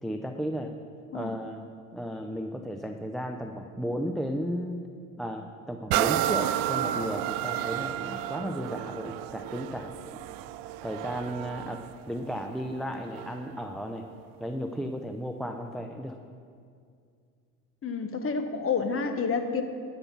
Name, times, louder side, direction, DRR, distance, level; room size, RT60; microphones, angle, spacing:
voice 1, 0.0-0.7 1.1-1.7 1.9-4.8 5.2-10.2 10.8-14.1 14.4-16.2, equal, ahead, 5 dB, 0.5 m, -34 dB
sound 1, 5.9-13.5 14.1-14.2, right 13 dB, 55° right, 0.5 m, -32 dB
voice 2, 17.8-19.6, left 5 dB, 30° left, 8 dB, 1.1 m, -29 dB
11.5 x 5.7 x 7.2 m, 2.3 s
hypercardioid pair, 70°, 43 cm